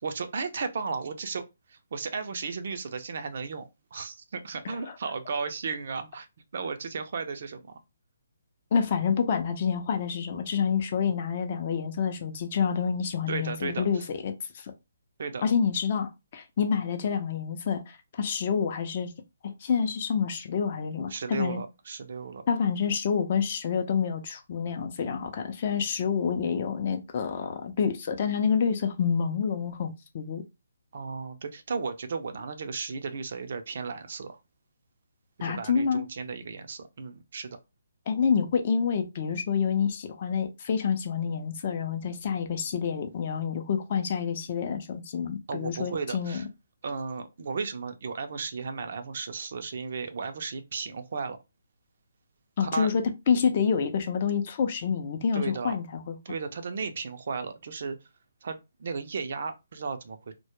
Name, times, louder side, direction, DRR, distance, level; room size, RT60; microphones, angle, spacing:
voice 1, 0.0-1.4 1.7-6.3 6.5-7.7 13.3-14.1 15.2-15.4 21.1-22.4 30.9-34.4 35.4-37.6 45.5-46.5 46.8-51.4 52.6-52.9 55.3-55.8 56.3-58.0 58.4-60.3, right 5 dB, 55° right, 0.4 m, -34 dB
voice 2, 8.7-14.7 15.4-19.1 19.4-21.6 22.5-30.4 35.4-36.0 38.1-46.4 52.6-56.2, left 6 dB, 40° left, 0.4 m, -28 dB
2.1 x 2.0 x 2.9 m
hypercardioid pair, 160°, 0 cm